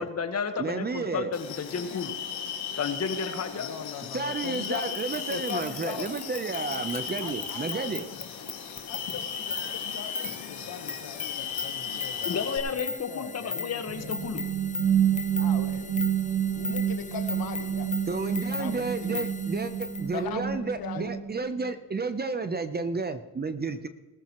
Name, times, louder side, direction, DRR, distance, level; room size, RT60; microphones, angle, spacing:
voice 1, 0.0-2.1 2.8-3.7 10.2-10.3 12.2-14.4, left 5 dB, 40° left, 7 dB, 1.5 m, -32 dB
voice 2, 0.6-1.3 4.1-8.1 18.1-23.9, right 4 dB, 25° right, 10 dB, 0.8 m, -31 dB
sound 1, 1.3-12.6, left 7 dB, 85° left, 3.1 m, -36 dB
voice 3, 3.5-6.1 7.2-7.9 8.9-14.1 15.4-15.9 16.5-17.9 18.5-19.2 20.1-21.1, left 8 dB, 65° left, 8 dB, 1.4 m, -40 dB
sound 2, 4.5-20.1, left 5 dB, 20° left, 0.6 m, -39 dB
sound 3, 13.9-21.7, right 9 dB, 85° right, 2.7 m, -29 dB
20.5 x 13.0 x 3.1 m, 1.2 s
cardioid pair, 110°, 39 cm